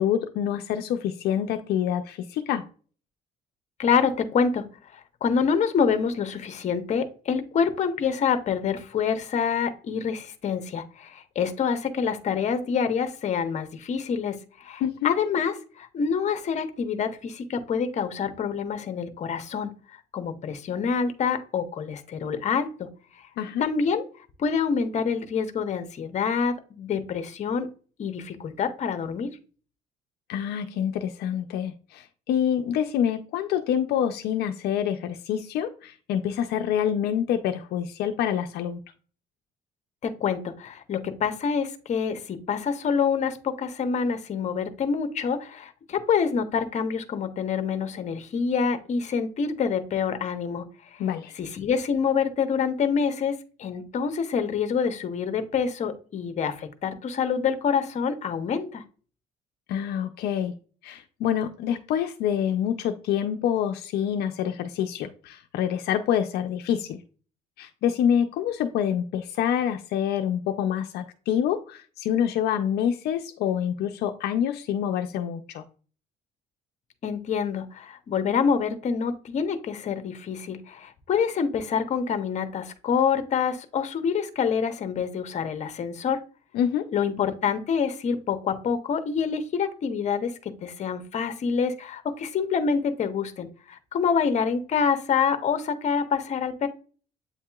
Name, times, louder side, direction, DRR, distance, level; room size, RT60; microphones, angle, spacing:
voice 1, 0.0-2.6 14.8-15.1 23.4-23.6 30.3-38.8 51.0-51.3 59.7-60.6 60.8-67.0 67.6-75.6 86.5-86.9, left 9 dB, 75° left, 6 dB, 0.4 m, -26 dB
voice 2, 3.8-4.7 5.2-19.7 20.1-22.9 23.6-24.0 24.4-27.7 28.0-29.3 40.0-50.6 51.3-58.8 77.0-86.2 86.9-96.7, left 6 dB, 45° left, 9 dB, 0.7 m, -26 dB
8.1 x 2.8 x 2.3 m, 0.39 s
cardioid pair, 110°, 17 cm